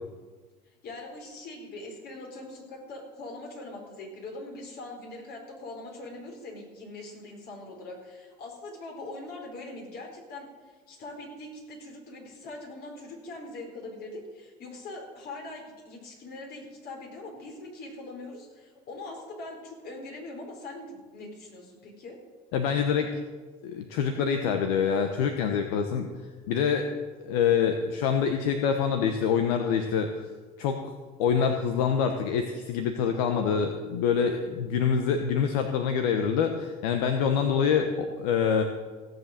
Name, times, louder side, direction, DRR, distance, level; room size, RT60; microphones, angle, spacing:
voice 1, 0.8-10.5 10.9-22.2, left 2 dB, 55° left, 1 dB, 4.7 m, -42 dB
voice 2, 22.5-23.1 23.6-26.1 26.5-26.9 27.2-30.1 30.6-30.8 31.2-38.6, left 7 dB, 80° left, 5 dB, 1.1 m, -25 dB
16.5 x 7.9 x 6.7 m, 1.4 s
hypercardioid pair, 75°, 19 cm